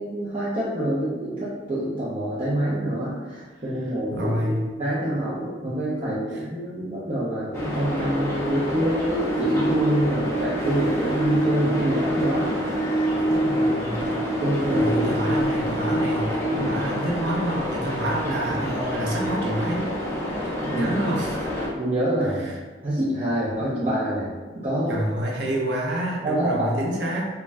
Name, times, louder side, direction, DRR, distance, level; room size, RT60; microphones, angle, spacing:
voice 1, 0.0-12.5 12.9-13.6 14.4-15.4 16.5-16.7 18.5-18.6 20.6-20.9 21.7-22.5 22.8-24.3 24.6-25.0 26.2-26.9, right 1 dB, 35° right, -10 dB, 0.5 m, -26 dB
voice 2, 4.1-4.7 6.3-6.4 13.5-14.1 14.7-19.9 20.4-21.4 22.2-22.6 24.9-27.3, right 1 dB, 75° right, -2 dB, 0.6 m, -28 dB
sound 1, 7.5-21.7, equal, 15° left, 0.5 m, -26 dB
2.5 x 2.2 x 3.2 m, 1.4 s
head